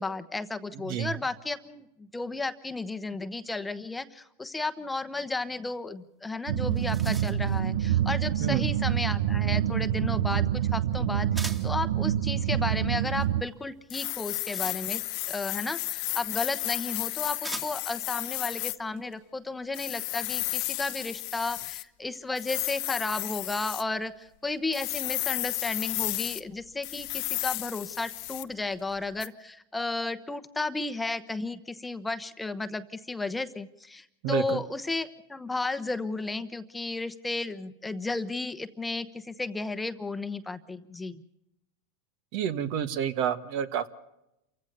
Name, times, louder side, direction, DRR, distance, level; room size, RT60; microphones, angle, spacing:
voice 1, 0.0-41.2, left 3 dB, 10° left, 10 dB, 1.0 m, -33 dB
voice 2, 0.7-1.1 8.4-8.7 34.2-34.6 42.3-43.9, right 9 dB, 60° right, 12 dB, 1.6 m, -29 dB
sound 1, 6.2-6.3 6.6-7.6 11.3-11.8 14.0-15.2 16.3-16.4 17.4-18.0, right 2 dB, 15° right, 2.1 m, -41 dB
sound 2, 6.5-13.4, right 11 dB, 85° right, 0.9 m, -27 dB
sound 3, 13.9-18.8 19.7-21.8 22.4-23.8 24.7-26.4 26.8-28.5 29.2-29.3, left 23 dB, 55° left, 0.8 m, -33 dB
28.0 x 15.5 x 6.8 m, 0.87 s
supercardioid pair, 120°, 0 cm